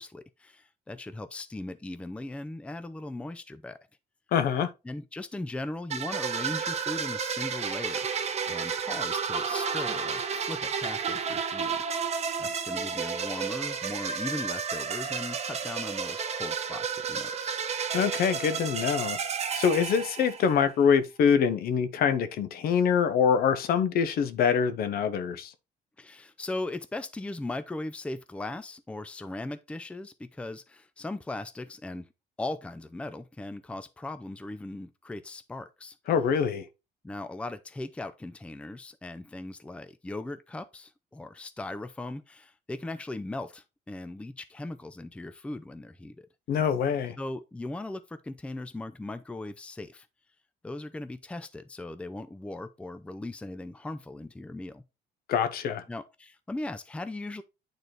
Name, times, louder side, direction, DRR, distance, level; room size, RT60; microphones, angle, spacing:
voice 1, 0.0-3.8 4.8-8.1 8.5-17.5 26.0-32.1 32.4-36.0 37.0-46.3 47.2-50.1 50.6-54.8 55.9-57.4, left 2 dB, 5° left, 0.5 m, -38 dB
voice 2, 4.3-4.7 17.9-19.2 19.5-25.5 36.1-36.6 46.5-47.2 55.3-55.8, left 7 dB, 65° left, 0.8 m, -25 dB
sound 1, 5.9-20.7, right 6 dB, 40° right, 0.9 m, -32 dB
9.0 x 4.1 x 3.1 m
cardioid pair, 110°, 17 cm